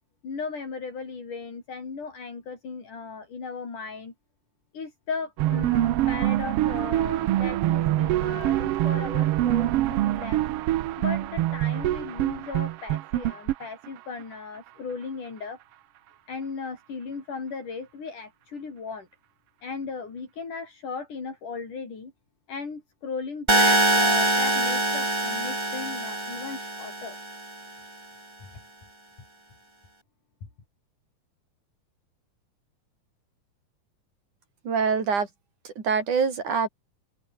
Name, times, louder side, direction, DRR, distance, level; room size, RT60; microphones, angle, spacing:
voice 1, 0.2-4.1 4.7-10.4 11.0-15.6 16.3-19.1 19.6-22.1 22.5-27.2, left 5 dB, 70° left, 7.0 m, -36 dB
sound 1, 5.4-14.2, right 14 dB, 90° right, 1.3 m, -25 dB
sound 2, 23.5-27.5, right 2 dB, 10° right, 1.8 m, -24 dB
voice 2, 34.7-35.3 35.7-36.7, right 5 dB, 65° right, 5.7 m, -25 dB
open air
omnidirectional pair, 3.7 m